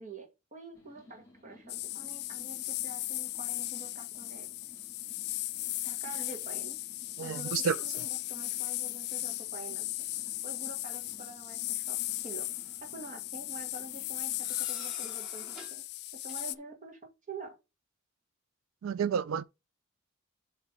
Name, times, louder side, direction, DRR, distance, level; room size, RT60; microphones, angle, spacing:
voice 1, 0.0-4.5 5.8-6.8 7.2-10.1 10.4-12.5 12.8-15.8 16.2-17.6, right 3 dB, 35° right, 1.8 m, -47 dB
sound 1, 0.7-14.6, left 2 dB, 15° left, 3.2 m, -58 dB
sound 2, 1.7-16.5, left 17 dB, 50° left, 0.4 m, -37 dB
voice 2, 7.2-7.8 18.8-19.4, right 7 dB, 80° right, 0.3 m, -30 dB
sound 3, 12.1-12.8 14.3-15.8 16.3-16.5, left 1 dB, 5° right, 2.4 m, -50 dB
7.7 x 3.3 x 5.9 m
head